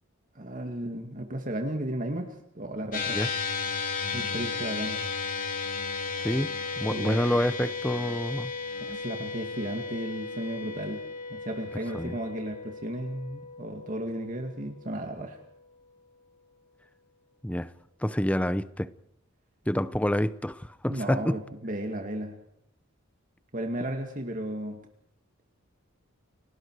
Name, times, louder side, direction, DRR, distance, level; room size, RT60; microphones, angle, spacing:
voice 1, 0.3-3.2 4.1-5.0 6.9-7.2 8.8-11.0 11.3-15.4 20.9-22.3 23.5-24.8, right 1 dB, 40° right, 2.2 m, -34 dB
sound 1, 2.9-15.4, left 5 dB, 40° left, 3.4 m, -35 dB
voice 2, 6.2-8.5 11.9-12.2 17.4-17.7 18.0-18.9 19.7-21.4, left 1 dB, 5° left, 0.7 m, -28 dB
30.0 x 19.0 x 4.8 m
head